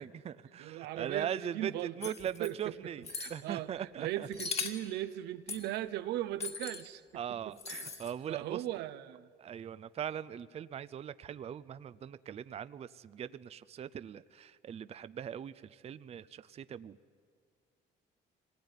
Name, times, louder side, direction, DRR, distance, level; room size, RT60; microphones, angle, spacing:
voice 1, 0.0-3.0 3.3-4.3 7.1-8.6 9.4-17.0, right 9 dB, 40° right, 15 dB, 0.5 m, -40 dB
voice 2, 0.6-2.1 2.4-2.7 3.1-7.0 7.3-8.0 8.3-9.3, right 13 dB, 85° right, 12 dB, 0.9 m, -38 dB
sound 1, 2.0-2.5 3.0-3.4 4.3-4.9 5.5-5.7 6.4-6.8 7.6-8.1, left 5 dB, 40° left, 2.3 m, -39 dB
25.0 x 19.5 x 9.6 m, 2.1 s
cardioid pair, 110°, 17 cm